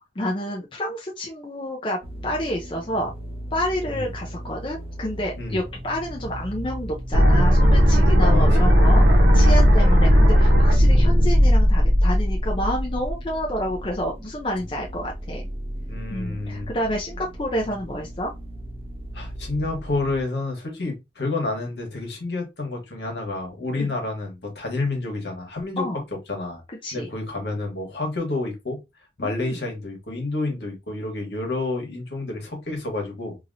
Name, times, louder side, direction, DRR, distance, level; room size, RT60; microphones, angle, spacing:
voice 1, 0.2-3.1 3.5-15.4 16.1-18.3 23.7-23.9 25.8-26.0 26.8-27.1 29.2-29.6, equal, 30° left, 0.5 m, -29 dB
sound 1, 2.0-20.2, right 1 dB, 35° right, 0.7 m, -35 dB
sound 2, 7.1-13.1, equal, 75° right, 0.9 m, -16 dB
voice 2, 8.2-8.7 9.8-10.0 15.9-16.7 19.1-25.8 26.3-26.6 26.9-28.8 29.2-33.4, left 2 dB, 65° left, 1.3 m, -29 dB
2.9 x 2.8 x 2.6 m
head